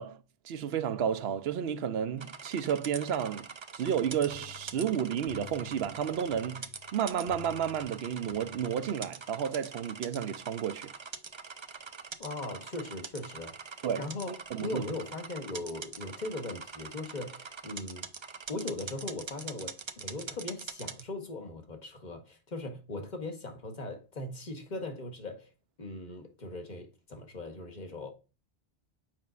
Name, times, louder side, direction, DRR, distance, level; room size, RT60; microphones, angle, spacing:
voice 1, 0.0-10.9 13.8-14.8, right 8 dB, 75° right, 0.9 m, -32 dB
sound 1, 2.2-21.0, right 5 dB, 35° right, 0.5 m, -44 dB
sound 2, 3.9-9.2, left 10 dB, 70° left, 1.3 m, -52 dB
voice 2, 12.2-13.6 14.0-18.1 18.5-25.5 25.8-28.1, left 2 dB, 45° left, 1.4 m, -39 dB
7.5 x 5.2 x 2.4 m
omnidirectional pair, 1.0 m